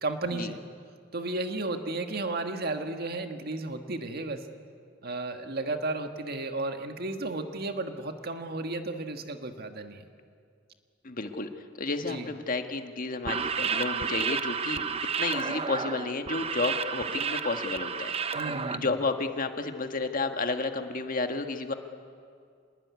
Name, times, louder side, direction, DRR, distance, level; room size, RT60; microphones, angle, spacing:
voice 1, 0.0-0.6 1.1-4.4 5.0-10.0 12.1-12.3 18.3-18.9, right 2 dB, 55° right, 6 dB, 1.7 m, -33 dB
voice 2, 11.0-11.5 11.8-14.8 15.2-18.4 18.7-21.7, left 3 dB, 45° left, 6 dB, 1.6 m, -31 dB
sound 1, 13.2-18.8, right 6 dB, 30° right, 0.8 m, -31 dB
26.5 x 20.0 x 9.6 m, 2.3 s
head